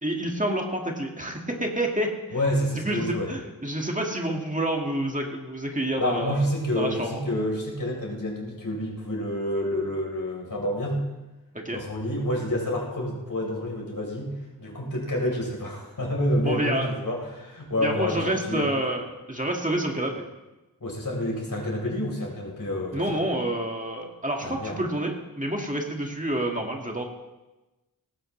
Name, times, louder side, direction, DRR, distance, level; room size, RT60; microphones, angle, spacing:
voice 1, 0.0-2.1 2.8-6.5 6.8-7.2 11.5-11.8 16.5-16.9 17.8-20.2 22.9-27.0, right 1 dB, 20° right, 1 dB, 1.9 m, -28 dB
voice 2, 2.3-3.3 6.0-11.0 11.7-18.7 20.8-23.2 24.4-24.8, left 1 dB, 60° left, -2 dB, 4.1 m, -28 dB
18.5 x 15.5 x 3.3 m, 1.1 s
wide cardioid pair, 65°, 36 cm